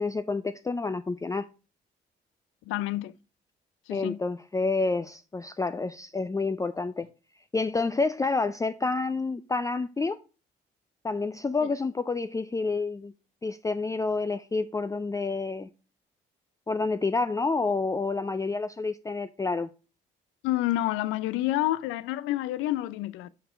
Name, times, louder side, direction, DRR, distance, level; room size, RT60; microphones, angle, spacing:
voice 1, 0.0-1.5 3.9-7.1 7.5-10.2 11.0-13.1 13.4-15.7 16.7-19.7, left 3 dB, 15° left, 0.4 m, -29 dB
voice 2, 2.7-3.1 3.9-4.2 11.6-11.7 20.4-23.3, left 15 dB, 80° left, 0.4 m, -28 dB
5.5 x 4.3 x 4.9 m
hypercardioid pair, 50°, 21 cm